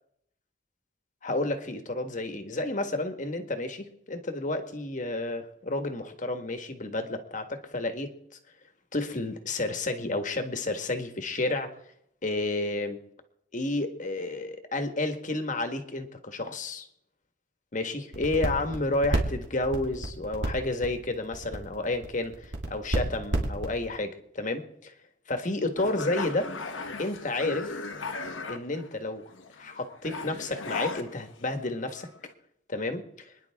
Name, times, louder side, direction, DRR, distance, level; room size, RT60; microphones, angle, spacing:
voice 1, 1.2-8.1 8.9-11.7 12.2-13.0 13.5-16.9 17.7-24.9 25.3-26.5 27.0-27.8 28.5-29.2 29.6-32.1 32.7-33.3, left 2 dB, 40° left, 7 dB, 1.6 m, -31 dB
sound 1, 18.1-24.0, right 1 dB, 75° right, 2.8 m, -30 dB
sound 2, 25.8-29.0 29.3-31.7 32.0-32.3, left 3 dB, 90° left, 1.4 m, -37 dB
26.5 x 10.5 x 3.6 m, 0.74 s
head